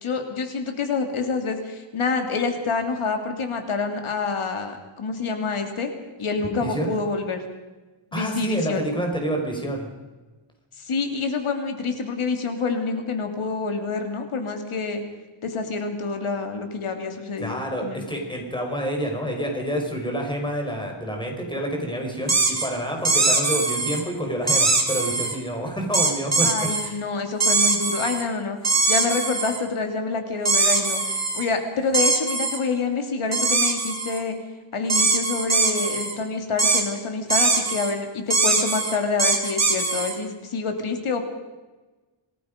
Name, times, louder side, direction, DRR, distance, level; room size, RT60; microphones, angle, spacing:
voice 1, 0.0-5.9 6.2-7.5 8.1-8.9 10.8-15.0 15.4-18.0 26.4-34.4 34.7-41.2, left 4 dB, 75° left, 5 dB, 3.0 m, -27 dB
voice 2, 6.6-6.9 8.1-9.9 17.4-26.5 26.8-27.0, right 1 dB, 10° left, 1 dB, 4.7 m, -28 dB
sound 1, 22.3-22.7 23.1-24.0 24.5-25.4 25.9-26.9 27.4-28.2 28.6-29.6 30.5-31.4 31.9-32.6 33.3-34.2 34.9-36.2 36.6-36.8 37.3-37.9 38.3-40.2, right 3 dB, 30° right, 3.1 m, -22 dB
27.0 x 19.5 x 5.2 m, 1.2 s
wide cardioid pair, 155°, 50 cm